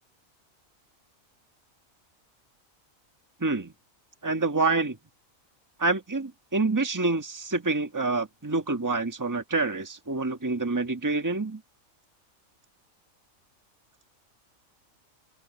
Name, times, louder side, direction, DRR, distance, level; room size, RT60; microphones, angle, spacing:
voice 1, 3.4-3.7 4.2-5.0 5.8-11.6, right 3 dB, 15° right, 1.5 m, -27 dB
open air
omnidirectional pair, 1.4 m